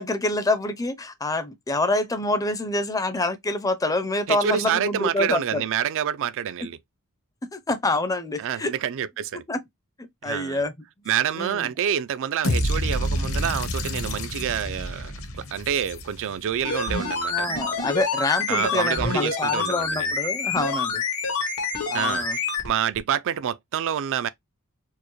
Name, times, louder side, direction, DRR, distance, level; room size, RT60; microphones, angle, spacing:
voice 1, 0.0-5.6 7.5-8.7 9.5-9.6 10.0-10.7 11.3-11.7 17.3-21.0 21.9-22.4, left 2 dB, 15° left, 0.5 m, -26 dB
voice 2, 4.3-6.8 8.4-9.4 10.2-10.6 11.1-17.6 18.5-20.1 21.9-22.3 22.6-24.3, right 9 dB, 60° right, 0.3 m, -27 dB
sound 1, 12.4-16.6, equal, 65° left, 0.9 m, -28 dB
sound 2, 16.6-22.7 23.0-23.1, left 4 dB, 90° left, 1.4 m, -27 dB
4.5 x 2.1 x 3.0 m
head